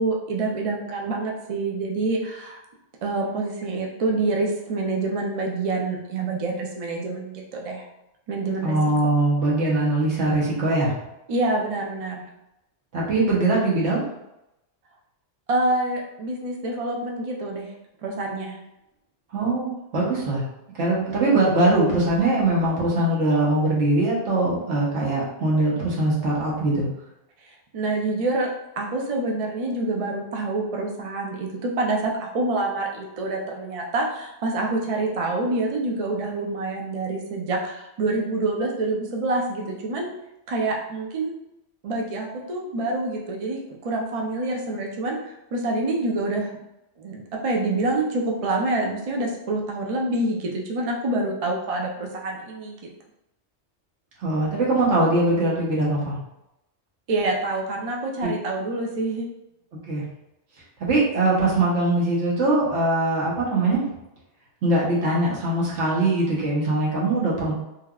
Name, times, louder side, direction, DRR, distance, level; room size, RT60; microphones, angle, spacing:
voice 1, 0.0-2.6 3.0-7.9 8.3-8.8 11.3-12.2 15.5-17.7 18.0-18.6 27.4-28.5 28.8-40.1 40.5-41.3 41.8-46.5 47.0-52.8 57.1-59.3, right 2 dB, 50° right, 0 dB, 0.4 m, -26 dB
voice 2, 8.6-10.9 12.9-14.0 19.3-20.4 20.7-26.9 54.2-56.2 58.2-58.3 59.7-60.0 60.8-63.8 64.6-67.5, right 2 dB, 80° right, -5 dB, 1.2 m, -22 dB
3.3 x 2.3 x 2.3 m, 0.89 s
omnidirectional pair, 1.2 m